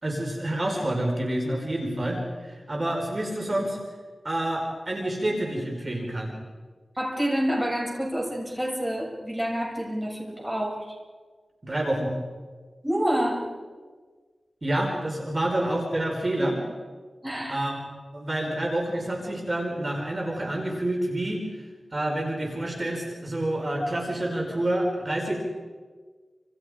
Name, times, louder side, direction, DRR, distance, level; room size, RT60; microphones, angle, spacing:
voice 1, 0.0-3.8 4.2-6.3 11.6-12.1 14.6-16.6 17.5-17.8 18.1-21.4 21.9-25.4, right 1 dB, 35° right, 1 dB, 4.8 m, -28 dB
voice 2, 7.0-10.9 12.8-13.4 17.2-17.7, equal, 15° right, -1 dB, 7.7 m, -28 dB
30.0 x 27.5 x 5.1 m, 1.5 s
wide cardioid pair, 70°, 0 cm